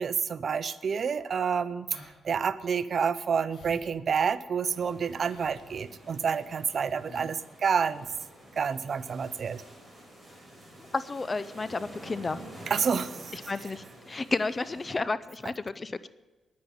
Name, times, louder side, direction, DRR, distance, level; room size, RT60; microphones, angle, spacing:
voice 1, 0.0-8.1 8.6-9.6 12.7-13.3, right 6 dB, 55° right, 15 dB, 0.7 m, -29 dB
sound 1, 1.9-2.1 2.5-2.6 3.5-3.8 4.1-4.2 5.2-5.6 6.3-6.4 6.7-6.8 7.1-7.4 8.0-8.1, equal, 70° left, 3.7 m, -48 dB
sound 2, 4.6-15.0, equal, 5° right, 5.1 m, -49 dB
voice 2, 10.9-12.4 13.3-16.1, left 3 dB, 30° left, 15 dB, 0.5 m, -32 dB
10.5 x 9.6 x 9.8 m, 1.2 s
cardioid pair, 105°, 0 cm